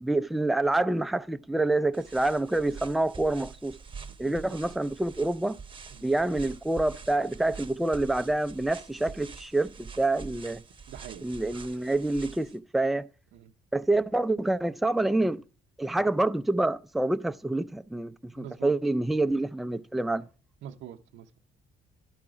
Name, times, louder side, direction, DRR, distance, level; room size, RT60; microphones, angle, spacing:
voice 1, 0.0-3.8 4.2-5.6 6.0-10.6 11.2-13.1 13.7-15.4 15.8-20.3, right 2 dB, ahead, 0.3 m, -27 dB
sound 1, 1.9-12.6, right 5 dB, 25° right, 0.8 m, -46 dB
voice 2, 4.2-4.6 5.9-6.1 10.9-11.2 13.3-13.5 18.4-18.7 20.6-21.4, right 10 dB, 80° right, 0.6 m, -44 dB
11.5 x 4.7 x 5.0 m
cardioid pair, 90°, 20 cm